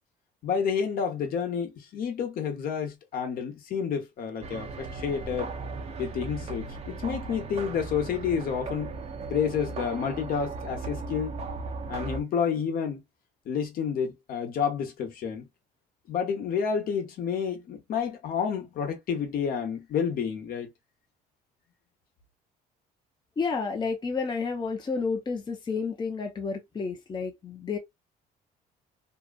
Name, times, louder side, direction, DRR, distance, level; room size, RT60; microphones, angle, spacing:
voice 1, 0.4-5.5 6.0-8.9 9.3-11.4 11.9-13.0 13.5-15.5 16.1-20.7, left 7 dB, 60° left, 1.0 m, -29 dB
sound 1, 4.4-12.2, right 4 dB, 40° right, 0.7 m, -37 dB
voice 2, 23.4-27.8, left 4 dB, 25° left, 0.7 m, -30 dB
2.8 x 2.4 x 2.3 m
cardioid pair, 110°, 17 cm